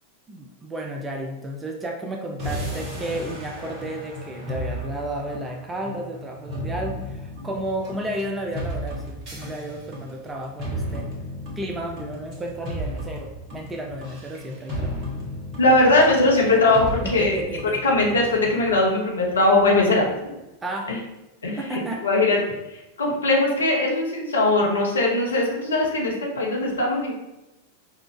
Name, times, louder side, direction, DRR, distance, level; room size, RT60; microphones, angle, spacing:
voice 1, 0.3-11.1 11.6-15.0 17.0-17.6 20.6-20.9 21.6-22.0, right 1 dB, 15° right, 2 dB, 0.5 m, -32 dB
sound 1, 2.4-18.8, equal, 30° right, 1.5 m, -34 dB
voice 2, 15.6-17.4 17.8-20.3 20.9-21.0 21.4-22.4 22.7-27.1, left 2 dB, 70° left, -2 dB, 1.1 m, -20 dB
5.7 x 2.5 x 3.3 m, 0.96 s
figure-of-eight pair, 90°, 0 cm